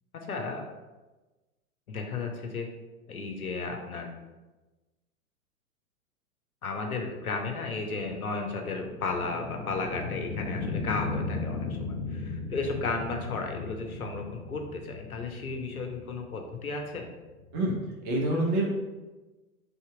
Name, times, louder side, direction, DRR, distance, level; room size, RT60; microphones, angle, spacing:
voice 1, 0.1-0.6 1.9-2.7 3.1-4.1 6.6-17.1, left 4 dB, 75° left, 3 dB, 0.8 m, -34 dB
sound 1, 7.2-17.9, left 3 dB, 30° left, 0.4 m, -37 dB
voice 2, 18.0-18.7, right 1 dB, 25° right, -1 dB, 0.7 m, -26 dB
3.4 x 2.9 x 4.7 m, 1.2 s
figure-of-eight pair, 100°, 44 cm